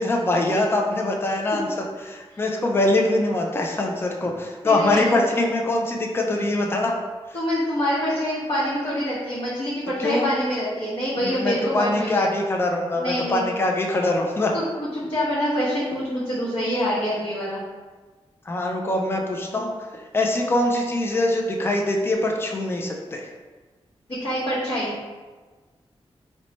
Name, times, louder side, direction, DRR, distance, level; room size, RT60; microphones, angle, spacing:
voice 1, 0.0-1.7 2.0-6.9 10.0-10.3 11.2-14.5 18.5-23.3, left 2 dB, 20° left, 1 dB, 0.4 m, -23 dB
voice 2, 4.6-5.1 7.3-12.3 13.0-13.5 14.5-17.6 24.2-24.9, equal, 50° left, -11 dB, 0.9 m, -25 dB
3.0 x 2.1 x 4.0 m, 1.3 s
wide cardioid pair, 170°, 11 cm